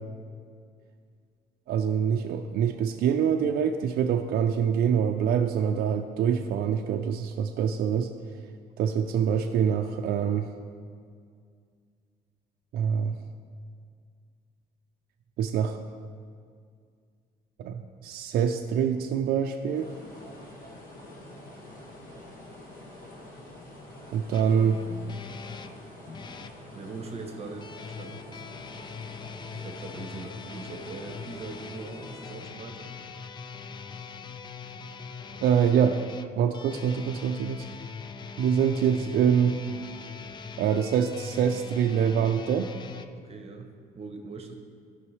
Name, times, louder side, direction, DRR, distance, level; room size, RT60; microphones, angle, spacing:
voice 1, 1.7-8.1 8.8-10.5 12.7-13.1 15.4-15.8 17.6-19.9 24.1-24.8 35.4-36.0 36.4-37.7 38.4-39.6 40.6-42.7, right 8 dB, 65° right, 4 dB, 0.4 m, -25 dB
sound 1, 19.6-32.6, left 1 dB, 55° left, 1.8 m, -47 dB
sound 2, 24.3-26.6 27.6-43.1, left 5 dB, 25° left, 0.4 m, -42 dB
voice 2, 26.7-28.4 29.5-32.9 43.2-43.7 43.9-44.5, right 3 dB, 35° right, 5 dB, 0.9 m, -41 dB
13.0 x 5.4 x 3.2 m, 2.1 s
cardioid pair, 110°, 17 cm